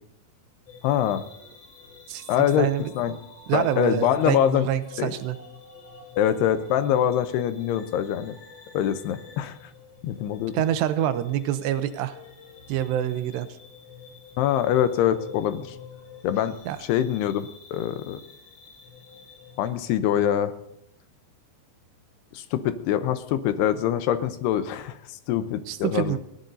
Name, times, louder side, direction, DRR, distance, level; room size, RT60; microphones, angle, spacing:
sound 1, 0.7-19.7, left 5 dB, 40° left, 5.0 m, -48 dB
voice 1, 0.8-1.2 2.3-2.7 3.0-3.1 3.5-4.7 5.0-5.1 6.2-8.4 8.7-9.6 10.0-10.5 14.4-15.8 16.2-18.2 19.6-20.5 22.3-26.2, left 10 dB, 80° left, 10 dB, 2.7 m, -24 dB
voice 2, 2.6-2.9 3.5-5.4 10.5-12.2 12.7-13.5 16.7-16.8 25.7-26.2, right 11 dB, 85° right, 11 dB, 2.9 m, -26 dB
30.0 x 11.5 x 2.7 m, 0.83 s
omnidirectional pair, 4.9 m